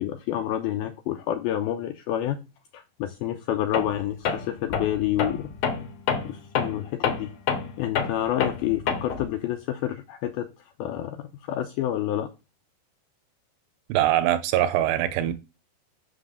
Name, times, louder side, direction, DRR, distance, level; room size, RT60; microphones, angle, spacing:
voice 1, 0.0-2.4 2.7-5.5 6.2-7.3 7.8-10.5 10.8-12.3, left 12 dB, 85° left, 2.2 m, -28 dB
Tools, 3.7-4.0 4.3-9.3, left 6 dB, 65° left, 2.2 m, -28 dB
voice 2, 13.9-15.3, right 13 dB, 85° right, 2.7 m, -22 dB
6.1 x 5.9 x 6.7 m
omnidirectional pair, 5.1 m